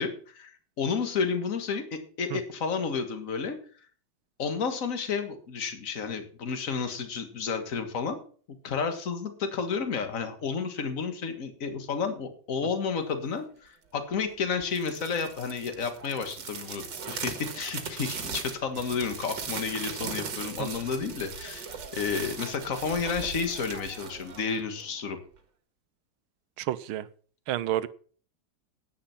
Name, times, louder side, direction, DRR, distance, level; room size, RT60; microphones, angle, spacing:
voice 1, 0.0-3.6 4.4-8.2 8.6-21.6 21.9-25.2, left 5 dB, 40° left, 8 dB, 1.8 m, -31 dB
sound 1, 14.6-25.0, right 5 dB, 60° right, 2.0 m, -39 dB
voice 2, 26.6-27.1 27.5-27.9, right 13 dB, 85° right, 15 dB, 1.5 m, -30 dB
10.0 x 9.0 x 5.8 m, 0.43 s
omnidirectional pair, 2.3 m